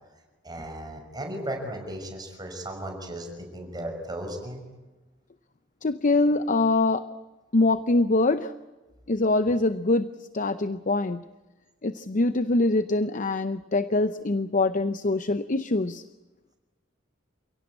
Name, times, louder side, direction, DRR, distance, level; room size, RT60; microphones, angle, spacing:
voice 1, 0.4-4.6, right 1 dB, 20° right, 3 dB, 5.9 m, -36 dB
voice 2, 5.8-7.1 7.5-8.5 9.1-11.2 11.8-16.0, left 2 dB, 45° left, 12 dB, 0.7 m, -24 dB
29.0 x 17.0 x 8.6 m, 1.2 s
head